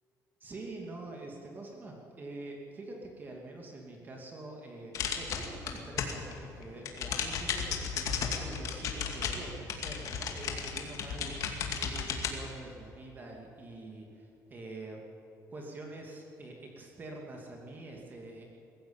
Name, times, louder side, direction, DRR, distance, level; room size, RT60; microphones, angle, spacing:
voice 1, 0.4-15.0 15.5-18.5, right 2 dB, 30° right, 0 dB, 2.6 m, -45 dB
sound 1, 4.9-6.3 6.6-12.3, left 6 dB, 55° left, 2.5 m, -34 dB
21.5 x 14.5 x 8.9 m, 2.9 s
cardioid pair, 150°, 7 cm